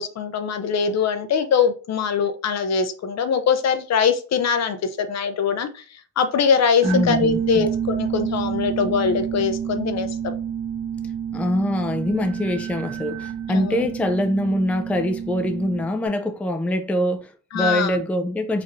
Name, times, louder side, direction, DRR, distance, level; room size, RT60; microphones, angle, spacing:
voice 1, 0.0-5.8 6.2-10.3 13.5-13.9 17.5-18.0, left 6 dB, 50° left, 0.6 m, -22 dB
voice 2, 6.8-7.7 11.3-18.6, left 1 dB, 5° left, 0.4 m, -24 dB
sound 1, 6.8-16.1, right 8 dB, 80° right, 0.7 m, -28 dB
4.1 x 2.6 x 3.1 m
cardioid pair, 85°, 36 cm